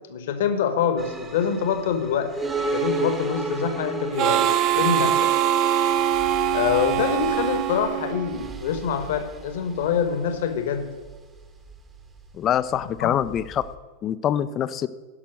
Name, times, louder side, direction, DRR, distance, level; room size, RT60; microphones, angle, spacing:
voice 1, 0.1-2.4 2.7-5.3 6.5-10.9 13.0-13.1, left 7 dB, 55° left, 9 dB, 1.2 m, -25 dB
sound 1, 1.0-13.7, right 3 dB, 15° right, 1.1 m, -34 dB
Harmonica, 4.2-8.6, right 11 dB, 40° right, 0.4 m, -23 dB
voice 2, 12.3-13.6 14.0-14.9, left 10 dB, 30° left, 15 dB, 0.5 m, -24 dB
11.0 x 5.9 x 6.5 m, 1.4 s
figure-of-eight pair, 90°, 0 cm